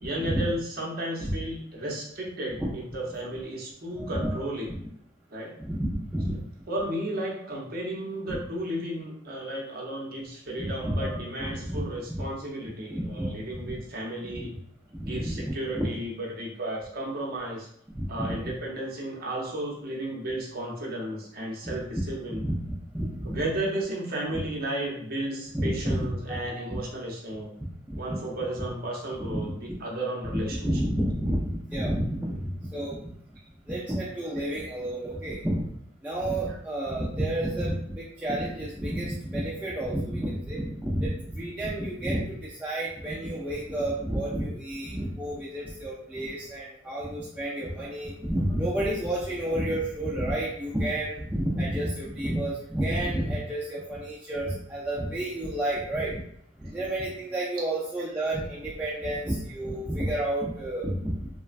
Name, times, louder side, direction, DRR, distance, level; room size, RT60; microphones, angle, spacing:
voice 1, 0.0-4.7 5.3-5.5 6.7-14.5 15.0-17.7 18.1-22.4 23.2-27.5 28.0-30.7 33.4-33.5, right 1 dB, 45° right, -2 dB, 0.6 m, -33 dB
voice 2, 4.0-4.4 4.7-4.8 5.6-6.4 10.6-11.2 11.6-11.9 12.1-12.2 12.9-13.3 13.6-13.8 14.3-14.5 14.9-15.4 15.7-15.9 17.9-18.4 21.6-21.8 22.3-23.4 25.5-26.8 27.6-28.2 29.3-29.5 30.3-33.1 33.7-35.6 36.0-56.2 56.6-61.2, right 1 dB, 5° right, -7 dB, 0.3 m, -30 dB
3.1 x 2.1 x 2.4 m, 0.69 s
head